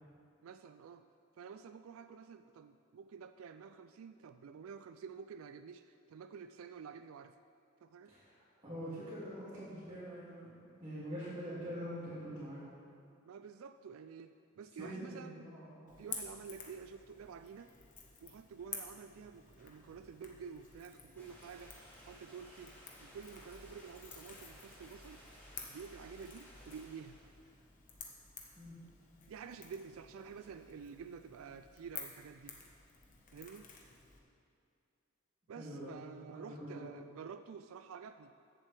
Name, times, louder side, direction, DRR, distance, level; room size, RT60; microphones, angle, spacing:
voice 1, 0.4-1.1 1.4-7.3 7.8-8.1 13.3-15.4 16.0-17.7 18.2-21.7 22.0-22.7 23.0-27.2 29.3-32.6 33.3-33.7 35.5-38.3, right 6 dB, 75° right, 10 dB, 0.3 m, -50 dB
voice 2, 8.6-10.5 10.8-12.7 14.8-16.0 28.6-28.7 35.6-35.9 36.3-36.9, equal, 25° right, -11 dB, 2.3 m, -44 dB
Crackle / Crack, 15.9-34.2, left 5 dB, 40° left, 1.2 m, -52 dB
sound 1, 21.2-27.3, equal, 10° left, 2.1 m, -58 dB
14.5 x 7.6 x 3.4 m, 2.4 s
head